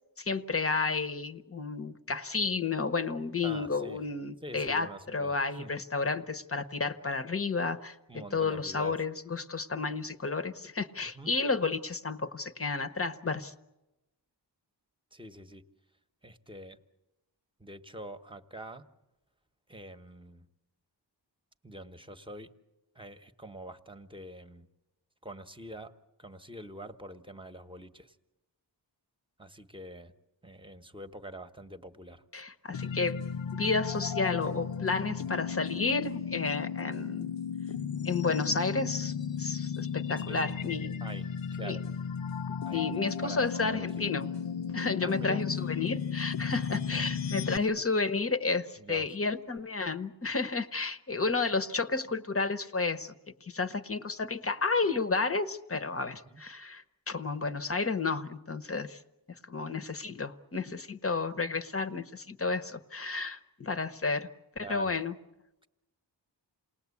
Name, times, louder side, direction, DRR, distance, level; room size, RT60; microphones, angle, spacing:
voice 1, 0.2-13.5 32.3-33.2 33.5-37.3 38.0-40.9 41.6-41.8 42.7-44.3 44.7-53.1 53.4-59.0 59.5-64.3 64.6-65.1, left 4 dB, 30° left, 11 dB, 1.0 m, -31 dB
voice 2, 3.4-4.0 4.4-5.7 8.1-9.0 11.1-11.3 15.1-15.6 16.2-16.8 17.6-18.8 19.7-20.5 21.6-22.5 22.9-24.7 25.2-25.9 26.2-28.2 29.4-30.1 30.4-32.2 40.2-40.5 41.0-41.9 42.6-43.9 45.0-45.4 46.9-47.0 47.5-47.7 48.8-49.1 56.3-56.4 64.6-65.0, right 1 dB, 10° right, 8 dB, 1.1 m, -45 dB
sound 1, 32.7-47.6, left 7 dB, 85° left, 0.9 m, -35 dB
28.5 x 19.5 x 8.4 m, 0.98 s
wide cardioid pair, 160°, 43 cm